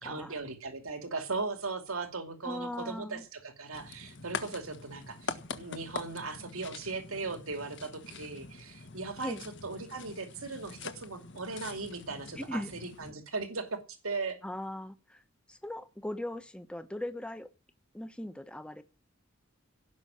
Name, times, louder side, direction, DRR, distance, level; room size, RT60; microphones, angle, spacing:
voice 1, 0.0-13.8 14.0-14.4, right 3 dB, 90° right, 2.5 m, -38 dB
voice 2, 2.4-3.2 9.2-9.4 12.4-12.7 14.4-15.2 15.5-17.5 17.9-18.8, left 1 dB, 5° left, 1.0 m, -39 dB
sound 1, 3.7-13.1, left 4 dB, 60° left, 1.6 m, -44 dB
17.5 x 6.2 x 8.8 m
head